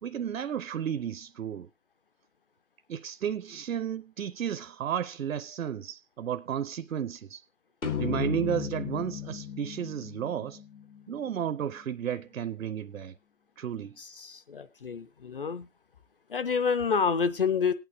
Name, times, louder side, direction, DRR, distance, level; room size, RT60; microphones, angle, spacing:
voice 1, 0.0-1.7 2.9-7.4 8.0-10.6 11.1-13.1 13.6-14.0, right 9 dB, 70° right, 0.6 m, -33 dB
sound 1, 7.8-11.3, left 8 dB, 80° left, 3.3 m, -35 dB
voice 2, 14.0-15.7 16.3-17.7, left 6 dB, 40° left, 0.6 m, -28 dB
19.5 x 8.9 x 2.7 m
figure-of-eight pair, 145°, 42 cm